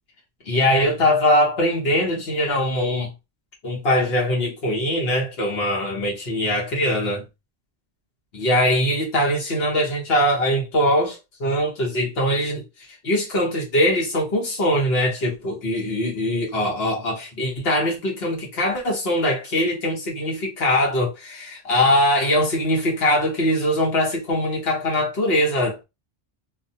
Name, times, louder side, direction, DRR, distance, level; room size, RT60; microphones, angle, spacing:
voice 1, 0.4-3.1 3.6-7.2 8.3-12.6 13.0-25.8, left 1 dB, 70° left, 1.2 m, -22 dB
2.6 x 2.2 x 2.7 m
omnidirectional pair, 1.1 m